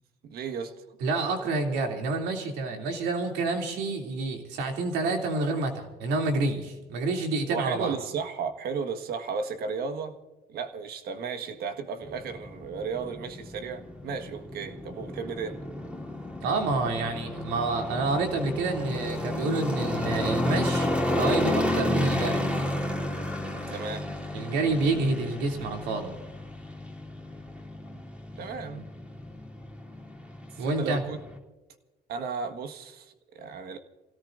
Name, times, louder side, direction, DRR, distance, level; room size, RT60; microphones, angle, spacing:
voice 1, 0.2-0.8 7.5-10.2 10.5-15.6 23.7-24.1 27.9-28.0 28.4-28.9 30.5-31.2 32.1-33.8, right 5 dB, 65° right, 1.7 m, -34 dB
voice 2, 1.0-8.0 16.4-22.5 24.3-26.1 30.6-31.0, right 3 dB, 90° right, 3.1 m, -28 dB
sound 1, 12.0-31.4, left 1 dB, 5° right, 3.2 m, -32 dB
28.5 x 17.5 x 2.6 m
cardioid pair, 110°, 17 cm